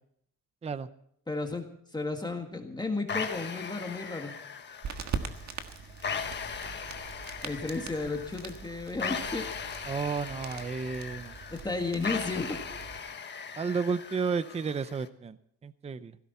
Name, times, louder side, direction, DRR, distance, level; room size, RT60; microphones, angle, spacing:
voice 1, 1.3-4.3 7.4-9.8 11.5-12.8, left 3 dB, 15° left, 4 dB, 1.7 m, -34 dB
sound 1, 3.1-15.1, left 6 dB, 35° left, 1.3 m, -39 dB
sound 2, 4.8-13.0, right 6 dB, 60° right, 1.6 m, -42 dB
voice 2, 9.9-11.4 13.6-15.4 15.6-16.2, right 5 dB, 20° right, 14 dB, 0.5 m, -32 dB
17.5 x 16.0 x 4.2 m, 0.69 s
cardioid pair, 150°, 32 cm